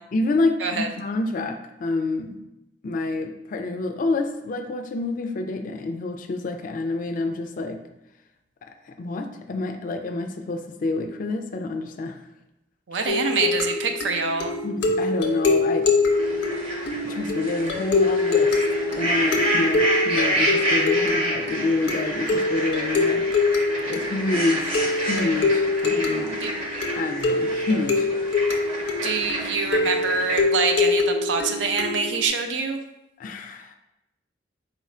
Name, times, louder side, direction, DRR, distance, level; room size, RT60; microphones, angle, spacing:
voice 1, 0.1-2.4 2.8-7.8 8.6-12.2 14.6-15.9 17.0-18.6 19.0-23.3 23.9-26.4 27.0-28.1 33.2-33.8, left 2 dB, 45° left, 5 dB, 0.3 m, -27 dB
voice 2, 12.9-14.5 26.4-26.5 29.0-32.8, right 4 dB, 80° right, 5 dB, 0.5 m, -25 dB
sound 1, 13.1-32.3, left 3 dB, 85° left, 0.6 m, -24 dB
sound 2, 16.1-30.4, right 1 dB, 35° right, 0.8 m, -29 dB
3.9 x 2.4 x 4.2 m, 0.90 s
head